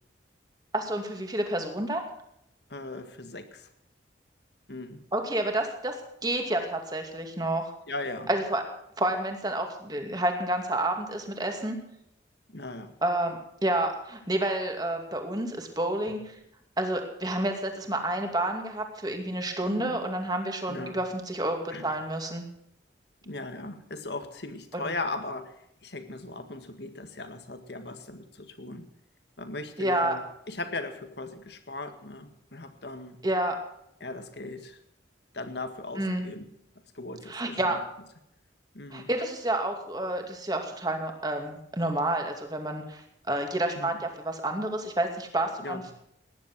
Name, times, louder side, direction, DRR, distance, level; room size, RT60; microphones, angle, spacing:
voice 1, 0.7-2.0 5.1-5.9 6.2-7.6 8.3-8.6 9.0-11.8 13.0-16.3 16.8-22.4 24.7-24.8 29.8-30.2 33.2-33.5 36.0-36.3 37.3-37.8 38.9-43.0 43.3-45.9, right 1 dB, 20° right, 4 dB, 2.5 m, -29 dB
voice 2, 2.7-3.7 4.7-5.0 7.9-8.3 12.5-12.9 19.6-20.0 20.7-21.0 21.7-21.9 23.2-25.6 25.8-28.9 29.4-33.2 34.0-34.8 35.3-36.5 36.9-37.8 38.7-39.1 43.7-44.0 45.6-45.8, left 2 dB, 65° left, 8 dB, 1.8 m, -38 dB
18.5 x 10.5 x 6.2 m, 0.77 s
head